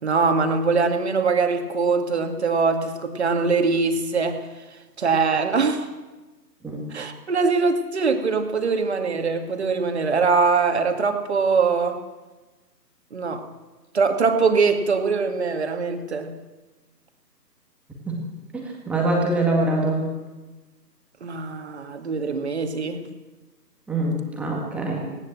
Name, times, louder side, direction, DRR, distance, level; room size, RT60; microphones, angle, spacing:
voice 1, 0.0-4.5 5.0-5.9 6.9-12.0 13.1-13.4 13.9-16.3 21.2-23.1, right 4 dB, 40° right, 6 dB, 2.4 m, -22 dB
voice 2, 18.5-20.0 23.9-25.0, right 2 dB, ahead, -2 dB, 2.0 m, -24 dB
19.0 x 18.5 x 7.6 m, 1.2 s
figure-of-eight pair, 145°, 50 cm